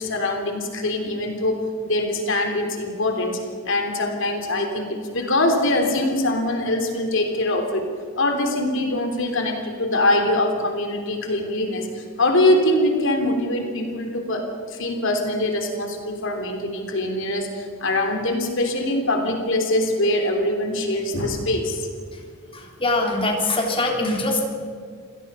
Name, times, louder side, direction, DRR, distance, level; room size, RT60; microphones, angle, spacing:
voice 1, 0.0-3.4 3.6-7.9 8.2-21.9, left 1 dB, 65° left, 4 dB, 3.3 m, -23 dB
voice 2, 22.5-24.5, left 2 dB, 25° left, 1 dB, 3.6 m, -23 dB
26.5 x 17.5 x 5.6 m, 2.2 s
head